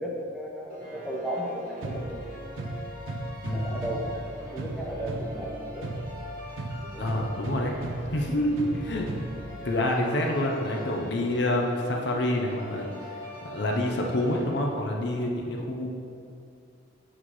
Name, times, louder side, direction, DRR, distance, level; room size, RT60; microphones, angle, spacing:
voice 1, 0.0-2.4 3.5-4.2 4.5-5.8 6.8-7.2, equal, ahead, -4 dB, 0.9 m, -35 dB
sound 1, 0.7-15.0, left 1 dB, 50° right, 1.2 m, -43 dB
sound 2, 1.8-9.8, right 2 dB, 85° right, 0.5 m, -37 dB
voice 2, 3.4-3.8 7.0-7.8 8.1-9.1 9.6-12.9 13.4-15.9, left 1 dB, 60° left, 0 dB, 0.7 m, -27 dB
8.1 x 5.8 x 3.1 m, 2.5 s
head